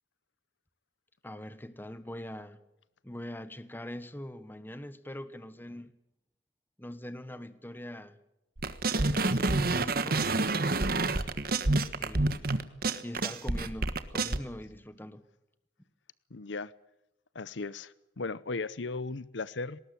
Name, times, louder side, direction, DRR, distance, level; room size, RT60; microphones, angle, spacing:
voice 1, 1.2-2.6 3.0-5.9 6.8-8.2 9.0-10.3 11.9-12.4 13.0-15.2, left 1 dB, 10° left, 1.3 m, -42 dB
sound 1, 8.6-14.4, right 2 dB, 55° right, 1.4 m, -28 dB
voice 2, 16.3-16.7 17.3-19.8, left 3 dB, 80° left, 0.8 m, -36 dB
20.0 x 18.5 x 9.8 m
head